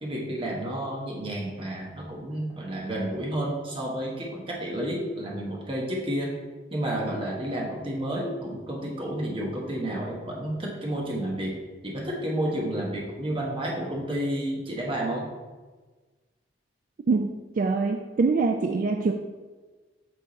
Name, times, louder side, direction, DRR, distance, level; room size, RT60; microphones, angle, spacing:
voice 1, 0.0-6.3 6.7-11.5 11.8-15.3, right 1 dB, 30° right, -2 dB, 1.2 m, -31 dB
voice 2, 17.6-19.1, right 4 dB, 50° right, 4 dB, 0.3 m, -24 dB
7.6 x 3.7 x 4.1 m, 1.3 s
head